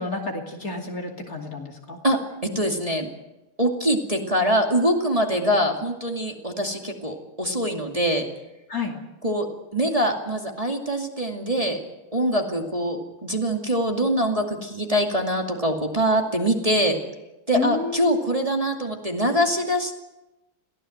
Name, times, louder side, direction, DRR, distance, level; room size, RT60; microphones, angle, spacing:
voice 1, 0.0-2.0 8.7-8.9 17.5-18.2, left 4 dB, 40° left, 1 dB, 3.1 m, -30 dB
voice 2, 2.5-3.1 3.6-8.3 9.2-9.5 9.7-11.8 12.1-17.0 17.5-20.0, equal, 15° right, 1 dB, 2.5 m, -23 dB
23.0 x 17.0 x 8.0 m, 1.0 s
omnidirectional pair, 2.3 m